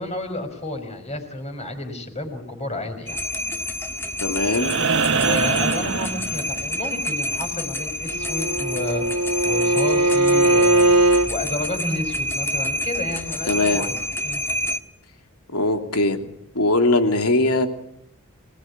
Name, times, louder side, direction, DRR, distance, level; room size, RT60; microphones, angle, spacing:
voice 1, 0.0-3.2 5.2-9.0 9.4-10.9 11.3-13.9 14.2-14.4, left 2 dB, 30° left, 6 dB, 5.2 m, -31 dB
sound 1, 3.1-14.8, left 1 dB, 10° left, 1.7 m, -28 dB
voice 2, 4.2-4.8 13.5-13.9 15.5-16.2 16.5-17.7, left 2 dB, 85° left, 6 dB, 3.0 m, -20 dB
sound 2, 4.5-6.9 8.7-8.8, right 5 dB, 60° right, 1.2 m, -23 dB
Bowed string instrument, 8.1-11.3, right 2 dB, 85° right, 2.4 m, -19 dB
25.5 x 19.5 x 9.6 m, 0.71 s
head